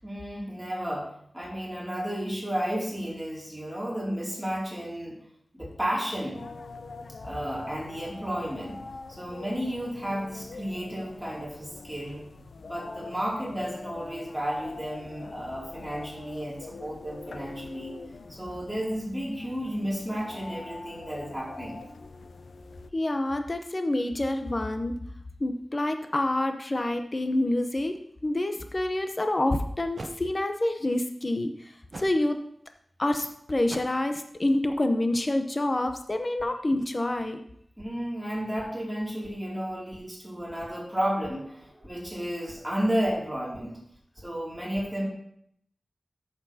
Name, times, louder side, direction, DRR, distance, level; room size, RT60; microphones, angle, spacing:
voice 1, 0.0-5.2 5.5-6.4 7.2-8.8 9.1-12.2 12.7-17.9 18.3-21.8 37.8-43.8 44.2-45.1, equal, 5° right, -4 dB, 2.6 m, -32 dB
sound 1, 6.3-22.9, left 3 dB, 85° left, 0.6 m, -44 dB
voice 2, 22.9-25.0 25.4-28.0 28.2-32.4 33.0-37.4, left 1 dB, 35° left, 6 dB, 0.7 m, -27 dB
sound 2, 29.0-29.1 30.0-30.2 31.9-32.2 33.7-34.1, right 3 dB, 55° right, 0.7 m, -40 dB
13.5 x 6.8 x 2.8 m, 0.70 s
wide cardioid pair, 100°, 0 cm